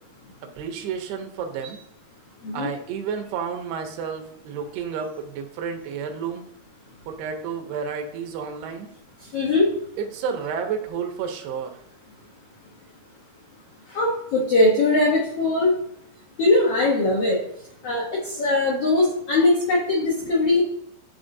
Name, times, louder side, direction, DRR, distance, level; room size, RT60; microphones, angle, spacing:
voice 1, 0.4-1.8 2.5-6.5 7.1-8.9 10.0-11.8 20.2-20.4, right 6 dB, 85° right, 5 dB, 2.8 m, -31 dB
voice 2, 9.3-9.7 13.9-15.7 16.4-17.4 17.8-20.6, left 2 dB, 85° left, -3 dB, 1.3 m, -20 dB
11.0 x 3.8 x 2.6 m, 0.73 s
omnidirectional pair, 4.5 m